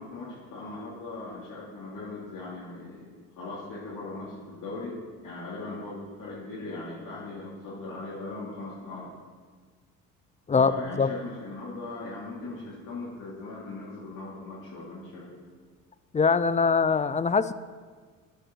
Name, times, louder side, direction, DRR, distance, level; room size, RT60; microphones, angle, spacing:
voice 1, 0.0-5.0 5.2-9.1 10.5-15.4, left 2 dB, 55° left, -7 dB, 3.2 m, -39 dB
voice 2, 16.1-17.5, left 5 dB, 20° left, 15 dB, 0.5 m, -22 dB
9.7 x 7.2 x 7.5 m, 1.5 s
supercardioid pair, 75°, 37 cm